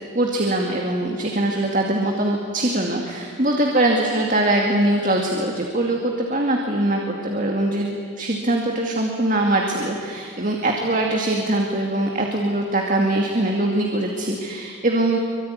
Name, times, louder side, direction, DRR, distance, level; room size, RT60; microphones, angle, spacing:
voice 1, 0.1-15.2, right 1 dB, 40° right, 1 dB, 2.3 m, -22 dB
24.5 x 24.0 x 10.0 m, 2.2 s
head